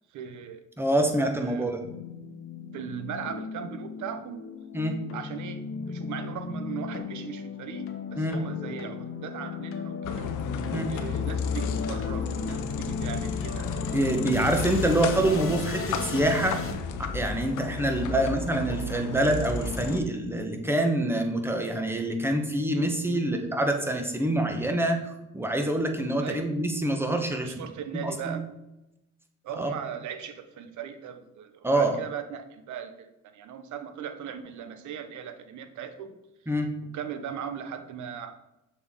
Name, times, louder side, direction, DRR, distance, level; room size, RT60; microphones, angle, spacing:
voice 1, 0.1-0.6 1.0-1.7 2.7-4.4 5.1-10.3 10.9-13.7 14.4-14.7 17.9-18.2 19.3-19.4 23.0-23.2 26.2-26.4 27.4-28.4 29.4-36.1 36.9-38.3, right 8 dB, 75° right, 9 dB, 0.8 m, -38 dB
voice 2, 0.8-1.8 4.7-4.9 8.1-8.4 10.7-10.9 13.9-16.6 17.0-27.7 28.0-28.4 29.6-29.7 31.6-32.0 36.5-36.7, right 1 dB, 10° right, 4 dB, 1.0 m, -26 dB
sound 1, 1.8-16.7, left 4 dB, 45° left, 1.0 m, -36 dB
sound 2, 10.0-20.0, left 5 dB, 80° left, 0.7 m, -33 dB
6.6 x 4.3 x 3.6 m, 0.91 s
cardioid pair, 90°, 30 cm